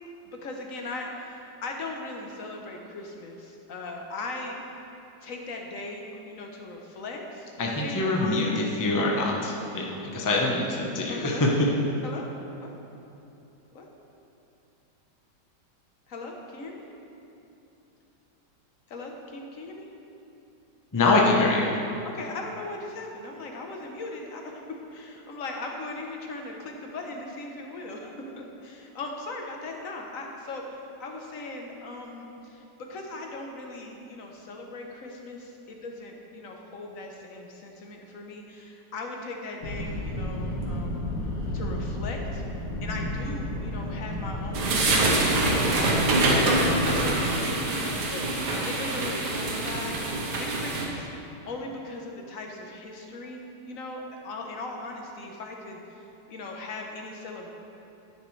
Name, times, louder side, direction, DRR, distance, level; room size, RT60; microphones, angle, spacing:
voice 1, 0.2-4.6 5.2-7.5 7.8-9.1 11.1-11.4 12.0-12.3 12.6-12.7 13.7-13.9 16.1-16.8 18.9-19.9 22.0-41.1 41.5-42.4 42.8-50.0 50.3-51.1 51.5-57.5, left 2 dB, 55° left, 1 dB, 1.2 m, -39 dB
voice 2, 7.6-11.5 20.9-21.7, left 2 dB, 20° left, -2 dB, 0.5 m, -24 dB
sound 1, 39.6-47.0, left 1 dB, 85° left, 2.1 m, -33 dB
sound 2, 44.5-50.8, right 2 dB, 70° right, 1.7 m, -25 dB
10.0 x 9.9 x 3.2 m, 2.9 s
omnidirectional pair, 1.9 m